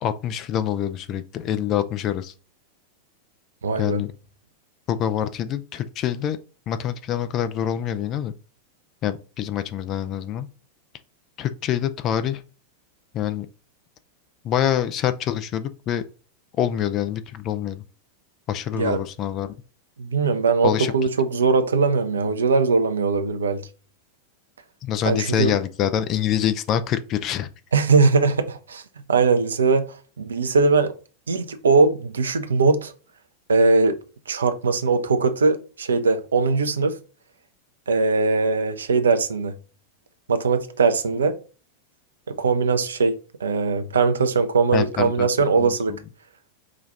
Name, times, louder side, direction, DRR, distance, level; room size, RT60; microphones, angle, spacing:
voice 1, 0.0-2.3 3.8-4.1 4.9-6.4 6.7-8.3 9.0-10.5 11.4-12.4 13.1-13.5 14.4-16.0 16.6-17.8 18.5-19.5 20.6-20.9 24.8-27.5 44.7-45.3 45.6-45.7, left 10 dB, 35° left, 0.4 m, -25 dB
voice 2, 3.6-4.0 18.7-19.0 20.0-23.6 25.1-25.5 27.7-28.8 29.1-29.9 30.2-30.9 31.3-32.9 33.5-33.9 34.3-37.0 37.9-39.5 40.3-41.3 42.4-43.1 43.4-46.0, right 4 dB, 70° right, 0.6 m, -20 dB
5.0 x 2.4 x 4.0 m
figure-of-eight pair, 90°, 0 cm